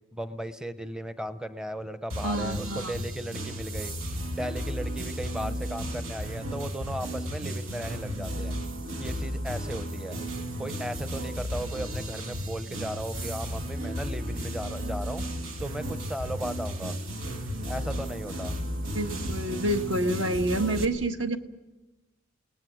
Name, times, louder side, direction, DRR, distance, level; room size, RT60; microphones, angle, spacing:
voice 1, 0.1-3.9 4.4-8.5 9.0-10.2 10.6-15.2 15.6-17.0 17.7-18.5, equal, 5° right, 11 dB, 0.7 m, -36 dB
sound 1, 2.1-20.8, equal, 90° right, 2.1 m, -34 dB
voice 2, 2.2-2.9 18.9-21.4, right 1 dB, 65° right, 6 dB, 1.5 m, -28 dB
29.0 x 19.0 x 6.2 m, 1.1 s
head